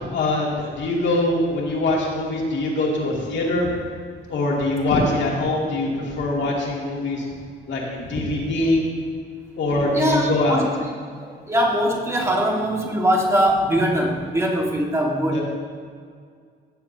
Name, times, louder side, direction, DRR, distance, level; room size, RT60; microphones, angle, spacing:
voice 1, 0.1-3.7 4.3-7.2 7.7-8.8 9.6-10.6 15.3-15.4, left 2 dB, 65° left, -3 dB, 2.4 m, -23 dB
voice 2, 9.9-10.7 11.2-15.4, right 1 dB, 15° right, -1 dB, 1.9 m, -21 dB
16.0 x 7.3 x 2.8 m, 2.1 s
cardioid pair, 90°, 20 cm